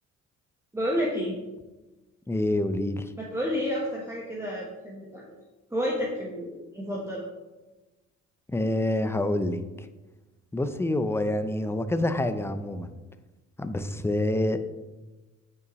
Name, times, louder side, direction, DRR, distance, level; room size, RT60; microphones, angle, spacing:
voice 1, 0.7-1.3 3.2-5.2 5.7-7.2, equal, 10° right, -4 dB, 1.3 m, -30 dB
voice 2, 2.3-3.1 8.5-9.9 10.5-13.0 13.6-14.6, left 1 dB, 10° left, 10 dB, 0.5 m, -27 dB
9.2 x 5.5 x 3.1 m, 1.1 s
cardioid pair, 90°, 30 cm